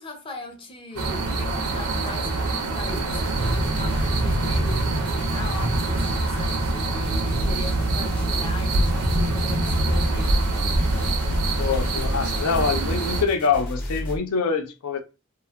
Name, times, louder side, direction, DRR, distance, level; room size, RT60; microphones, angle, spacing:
voice 1, 0.0-6.6 6.9-11.0, left 1 dB, 25° left, 0.5 m, -39 dB
sound 1, 1.0-13.2, right 2 dB, 85° right, 0.5 m, -24 dB
sound 2, 3.1-14.2, equal, 40° left, 0.9 m, -33 dB
voice 2, 11.6-15.0, left 5 dB, 80° left, 0.5 m, -25 dB
2.8 x 2.3 x 2.2 m
head